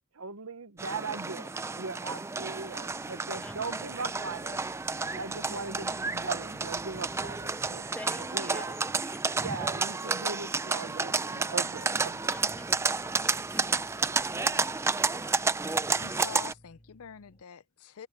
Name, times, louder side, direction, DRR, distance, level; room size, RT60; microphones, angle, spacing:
voice 1, 0.0-4.6 5.1-8.8 9.4-12.3, right 4 dB, 75° right, 0.9 m, -39 dB
sound 1, 0.8-16.5, right 4 dB, 10° right, 0.3 m, -31 dB
sound 2, 1.5-17.4, equal, 25° left, 6.7 m, -58 dB
voice 2, 3.4-3.8 7.6-9.1 9.7-10.4 12.3-12.9 13.2-13.9 15.3-15.6, left 1 dB, 5° left, 1.4 m, -47 dB
voice 3, 15.9-18.1, left 6 dB, 75° left, 0.5 m, -45 dB
sound 3, 16.5-16.7, right 2 dB, 45° right, 7.1 m, -67 dB
head